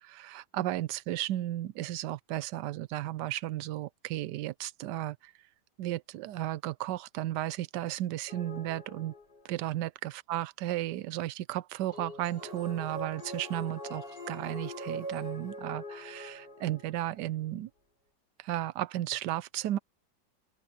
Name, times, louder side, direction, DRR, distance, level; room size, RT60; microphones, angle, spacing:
voice 1, 0.0-5.3 5.8-9.1 9.4-17.7 18.4-19.8, right 14 dB, 80° right, 1.2 m, -34 dB
sound 1, 8.3-9.6 11.9-17.2, equal, 75° left, 6.4 m, -42 dB
open air
omnidirectional pair, 1.8 m